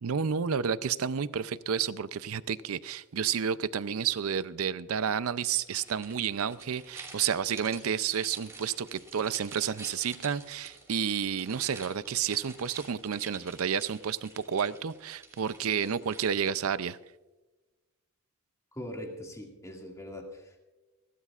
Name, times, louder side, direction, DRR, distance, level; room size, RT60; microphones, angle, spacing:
voice 1, 0.0-17.0, right 7 dB, 70° right, 16 dB, 0.5 m, -30 dB
sound 1, 5.5-16.7, right 3 dB, 15° right, 3.0 m, -49 dB
voice 2, 18.7-20.6, left 1 dB, 15° left, 1 dB, 2.2 m, -41 dB
29.0 x 12.5 x 2.4 m, 1.2 s
head